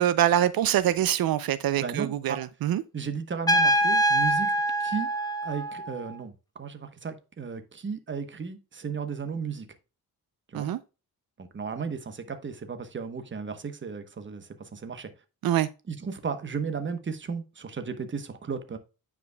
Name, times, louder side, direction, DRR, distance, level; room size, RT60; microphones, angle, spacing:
voice 1, 0.0-2.8 10.5-10.8 15.4-15.7, right 12 dB, 70° right, 0.5 m, -24 dB
voice 2, 1.7-2.4 2.9-5.1 5.4-6.3 6.6-9.7 10.5-10.7 11.4-15.1 15.9-18.8, right 5 dB, 30° right, 1.1 m, -34 dB
Trumpet, 3.5-6.1, right 1 dB, 10° left, 0.9 m, -24 dB
9.5 x 5.0 x 2.3 m
cardioid pair, 125°, 37 cm